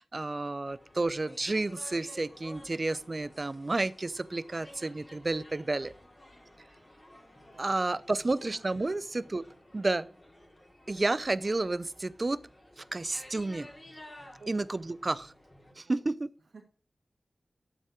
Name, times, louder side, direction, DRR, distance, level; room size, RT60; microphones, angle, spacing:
voice 1, 0.0-5.9 7.6-9.5 9.7-10.1 10.9-12.4 12.8-13.7 14.5-15.3 15.8-16.3, right 2 dB, 40° right, 0.5 m, -31 dB
sound 1, 0.6-15.7, left 1 dB, 25° left, 3.9 m, -53 dB
voice 2, 7.5-9.0 9.7-10.1 14.4-14.9 15.7-16.0 16.4-16.6, right 4 dB, 90° right, 2.5 m, -57 dB
8.1 x 7.5 x 6.3 m
wide cardioid pair, 65°, 0 cm